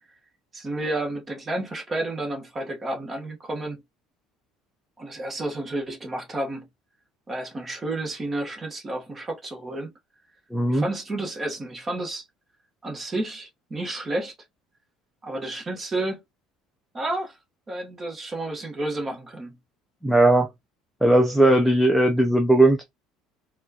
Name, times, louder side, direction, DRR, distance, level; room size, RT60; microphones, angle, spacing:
voice 1, 0.5-3.8 5.0-6.7 7.3-9.9 10.7-12.2 12.8-14.3 15.2-16.2 16.9-17.4 17.7-19.6, right 2 dB, 20° right, 1.0 m, -31 dB
voice 2, 10.5-10.8 20.0-20.5 21.0-22.8, right 1 dB, ahead, 0.4 m, -18 dB
4.3 x 2.3 x 2.7 m
cardioid pair, 155°, 0 cm